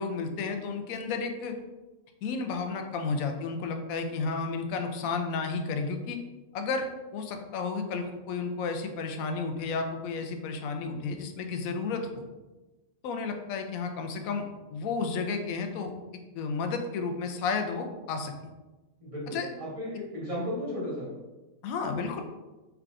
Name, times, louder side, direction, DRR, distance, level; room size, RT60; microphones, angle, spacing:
voice 1, 0.0-1.6 2.2-6.2 6.5-6.9 7.1-12.2 13.0-14.4 14.7-15.9 16.3-18.3 19.3-19.5 21.6-22.2, left 4 dB, 80° left, 5 dB, 1.0 m, -32 dB
voice 2, 19.0-21.1, equal, 25° right, -7 dB, 1.4 m, -35 dB
4.5 x 3.5 x 2.5 m, 1.1 s
omnidirectional pair, 1.4 m